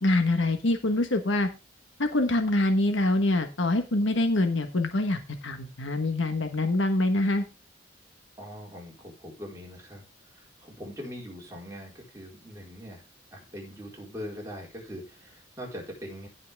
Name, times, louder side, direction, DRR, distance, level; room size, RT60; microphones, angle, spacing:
voice 1, 0.0-1.5 2.0-7.4, left 2 dB, 80° left, 7 dB, 1.3 m, -25 dB
voice 2, 8.4-13.0 13.3-16.3, equal, 15° right, -2 dB, 4.5 m, -42 dB
17.0 x 5.8 x 3.5 m, 0.28 s
head